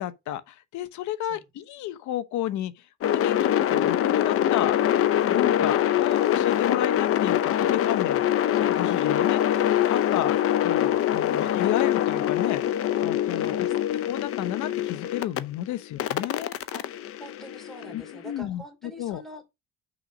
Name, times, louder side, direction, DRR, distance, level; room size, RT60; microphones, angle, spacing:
voice 1, 0.0-2.7 3.0-4.8 5.3-8.2 8.5-10.4 10.6-12.7 13.0-13.7 14.1-16.5 17.9-19.2, left 12 dB, 80° left, 1.0 m, -32 dB
sound 1, 3.0-15.4 16.0-18.1, left 11 dB, 50° left, 0.7 m, -24 dB
voice 2, 10.1-10.4 13.4-14.0 15.7-15.8 16.7-19.4, equal, ahead, 2.9 m, -45 dB
6.2 x 5.0 x 5.2 m
cardioid pair, 125°, 29 cm